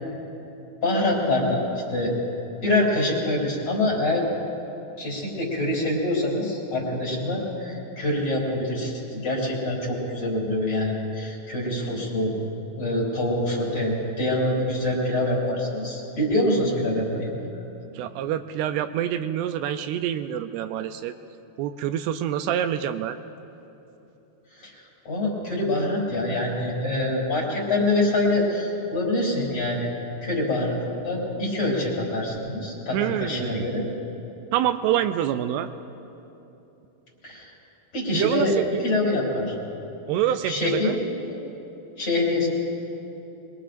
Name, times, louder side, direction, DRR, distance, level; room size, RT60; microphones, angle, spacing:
voice 1, 0.8-2.1 2.6-4.3 5.0-12.3 12.8-17.3 24.6-24.7 25.1-29.9 30.2-33.9 37.2-37.5 37.9-38.6 38.8-39.5 40.5-41.4 42.0-42.5, left 1 dB, 35° left, -4 dB, 3.7 m, -25 dB
voice 2, 18.0-21.1 21.6-23.2 32.9-33.7 34.5-35.7 38.1-38.9 40.1-41.0, right 11 dB, 85° right, 8 dB, 2.6 m, -26 dB
24.0 x 22.0 x 2.5 m, 3.0 s
omnidirectional pair, 4.8 m